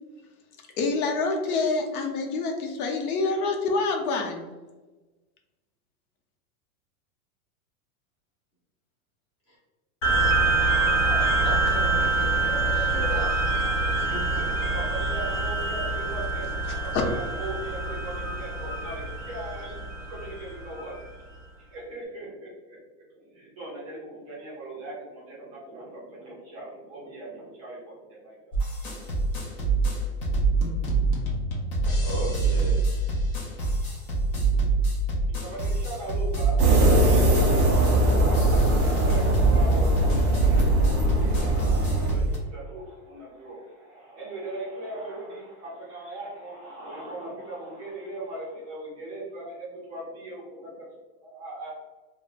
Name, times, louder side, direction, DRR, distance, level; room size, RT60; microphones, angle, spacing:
voice 1, 0.8-4.5 16.7-16.8, left 3 dB, 85° left, 2 dB, 0.7 m, -27 dB
sound 1, 10.0-20.9, right 3 dB, 60° left, 1.0 m, -25 dB
voice 2, 11.4-13.3 13.9-14.7 32.0-32.8, right 1 dB, 15° left, -8 dB, 0.8 m, -36 dB
voice 3, 13.0-13.7 14.7-16.6 16.8-19.8 20.1-20.9 21.7-22.8 23.3-27.9 28.2-28.4 35.3-50.9 51.2-51.7, right 2 dB, 25° right, -5 dB, 0.5 m, -39 dB
sound 2, 28.5-42.4, right 3 dB, 40° left, 0.5 m, -25 dB
sound 3, 36.6-42.1, right 1 dB, 40° right, 0.9 m, -21 dB
3.1 x 2.1 x 2.4 m, 1.2 s
supercardioid pair, 170°, 43 cm